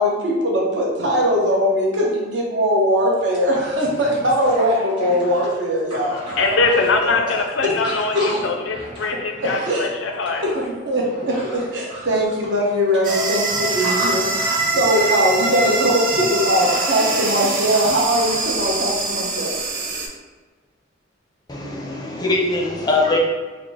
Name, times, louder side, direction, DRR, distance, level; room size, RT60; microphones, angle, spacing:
voice 1, 0.0-6.8 7.0-7.4 7.6-7.7 9.7-9.9 10.4-19.6, equal, 70° right, -3 dB, 0.9 m, -21 dB
sound 1, 2.8-2.9 3.2-18.5, equal, 25° right, 1.1 m, -35 dB
voice 2, 6.1-10.4, left 3 dB, 85° left, 3 dB, 0.5 m, -22 dB
sound 2, 13.0-20.1, right 3 dB, 45° right, 0.5 m, -23 dB
voice 3, 21.5-23.2, left 2 dB, 20° left, 0 dB, 0.4 m, -21 dB
3.7 x 2.0 x 3.4 m, 1.4 s
head